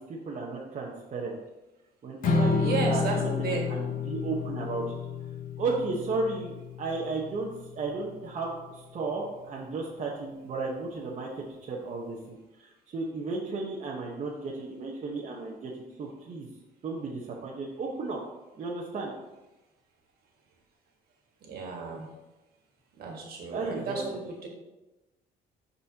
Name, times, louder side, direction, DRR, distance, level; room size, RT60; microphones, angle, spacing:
voice 1, 0.0-1.4 2.0-5.0 5.6-16.5 16.8-18.2 18.6-19.1 23.5-24.0, right 3 dB, 45° right, -3 dB, 1.1 m, -34 dB
Strum, 2.2-8.5, left 5 dB, 55° left, 1.0 m, -31 dB
voice 2, 2.5-3.7 21.5-22.1 23.0-24.5, right 4 dB, 65° right, 1 dB, 1.8 m, -33 dB
12.0 x 4.2 x 2.9 m, 1.0 s
cardioid pair, 110°, 17 cm